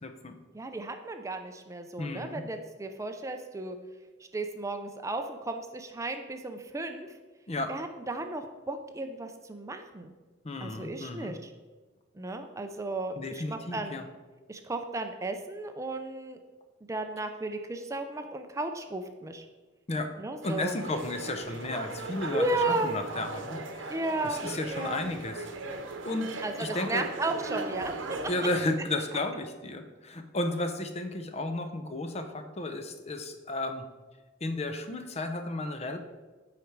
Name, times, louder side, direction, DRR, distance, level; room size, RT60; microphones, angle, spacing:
voice 1, 0.0-0.4 2.0-2.4 7.5-7.7 10.4-11.3 13.2-14.0 19.9-20.1 20.4-22.4 22.8-25.5 26.0-26.3 26.6-27.1 28.3-33.8 34.4-36.0, left 2 dB, 35° left, 7 dB, 0.7 m, -33 dB
voice 2, 0.5-3.8 4.3-7.1 7.7-10.1 10.6-11.5 12.2-14.0 14.5-16.4 16.9-19.5 20.2-20.8 22.3-22.9 23.9-25.1 26.4-28.2, right 2 dB, 15° right, 6 dB, 0.5 m, -34 dB
sound 1, 20.4-28.7, right 2 dB, 85° right, 0.9 m, -38 dB
8.5 x 5.0 x 4.6 m, 1.3 s
head